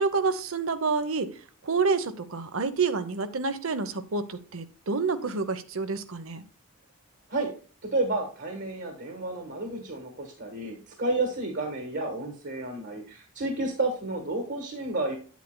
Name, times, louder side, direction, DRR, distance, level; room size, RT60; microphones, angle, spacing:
voice 1, 0.0-1.3 1.6-6.4, right 4 dB, 70° right, 11 dB, 0.8 m, -28 dB
voice 2, 7.8-15.1, right 2 dB, 50° right, 2 dB, 1.4 m, -31 dB
9.3 x 8.2 x 2.2 m, 0.40 s
head